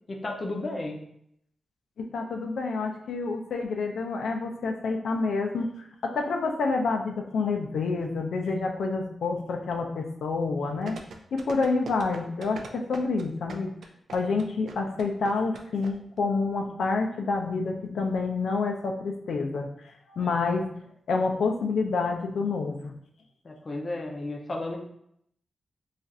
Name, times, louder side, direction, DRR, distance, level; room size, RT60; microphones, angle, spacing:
voice 1, 0.1-1.0 20.2-20.3 23.4-24.8, left 2 dB, 30° left, 1 dB, 0.5 m, -33 dB
voice 2, 2.0-11.0 11.3-13.8 14.1-19.7 20.1-20.7 21.1-22.9, left 4 dB, 90° left, 2 dB, 0.4 m, -28 dB
sound 1, 10.9-15.9 16.2-16.3, right 3 dB, 75° right, 0.3 m, -41 dB
2.4 x 2.4 x 4.1 m, 0.72 s
wide cardioid pair, 160°, 0 cm